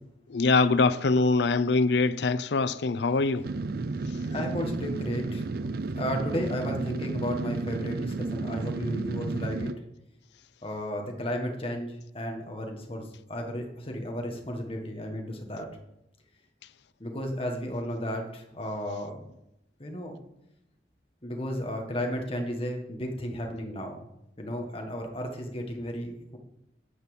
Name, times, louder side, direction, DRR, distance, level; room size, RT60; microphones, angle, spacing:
voice 1, 0.3-3.4, left 3 dB, 75° left, 0.5 m, -23 dB
sound 1, 3.4-9.7, right 3 dB, 55° right, 0.4 m, -32 dB
voice 2, 4.3-5.4 5.9-9.7 10.6-15.7 17.0-19.3 19.8-20.2 21.2-24.1 24.4-26.4, equal, 30° left, 1.6 m, -33 dB
9.9 x 5.6 x 7.2 m
head